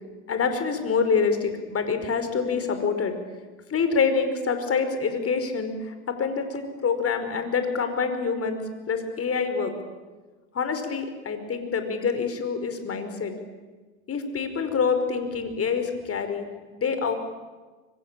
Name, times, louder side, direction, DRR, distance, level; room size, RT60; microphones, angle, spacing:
voice 1, 0.3-3.2 3.7-9.7 10.5-13.3 14.1-16.5 16.7-17.1, left 5 dB, 35° left, 8 dB, 5.0 m, -26 dB
25.0 x 23.5 x 9.0 m, 1.3 s
hypercardioid pair, 80°, 40 cm